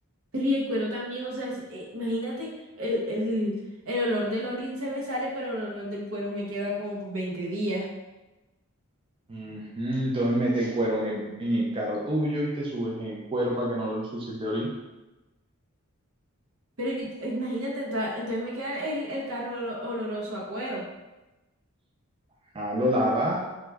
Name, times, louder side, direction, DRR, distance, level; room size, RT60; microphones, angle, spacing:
voice 1, 0.3-2.5 2.8-3.5 3.8-7.9 16.8-20.8, equal, 85° right, -4 dB, 0.9 m, -30 dB
voice 2, 9.3-14.7 22.5-23.4, equal, 25° right, -3 dB, 0.4 m, -27 dB
3.0 x 2.3 x 3.4 m, 1.1 s
head